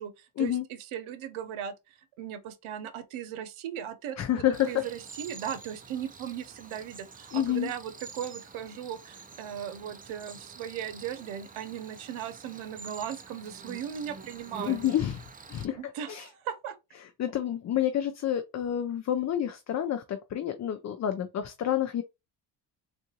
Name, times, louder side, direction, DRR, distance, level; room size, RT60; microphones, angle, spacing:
voice 1, 0.0-14.8 15.8-16.7, right 9 dB, 85° right, 0.8 m, -38 dB
voice 2, 4.2-4.8 7.3-7.7 14.7-15.2 15.5-15.8 16.1-16.3 17.0-22.0, left 11 dB, 40° left, 0.4 m, -29 dB
Cricket, 4.5-15.7, right 4 dB, 20° right, 0.4 m, -47 dB
3.7 x 2.4 x 2.8 m
cardioid pair, 95°, 48 cm